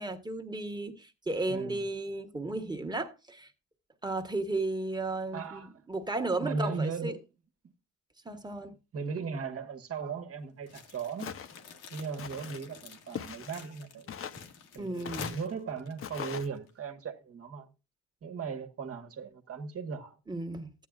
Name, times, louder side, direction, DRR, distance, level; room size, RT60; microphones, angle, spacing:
voice 1, 0.0-3.5 4.0-7.1 8.2-8.7 14.8-15.4 20.3-20.7, right 2 dB, 15° right, 1.4 m, -34 dB
voice 2, 1.5-1.8 5.3-5.9 6.3-7.3 8.3-8.5 8.9-11.4 11.9-14.2 14.7-17.7 18.2-20.2, right 5 dB, 50° right, 1.4 m, -37 dB
sound 1, 10.7-16.8, left 4 dB, 90° left, 1.7 m, -49 dB
Walk footsteps, 11.2-11.6 12.2-12.6 13.1-13.7 14.1-14.5 15.0-15.5 16.0-16.5, left 8 dB, 45° left, 0.8 m, -40 dB
14.0 x 9.3 x 2.4 m
cardioid pair, 90°, 30 cm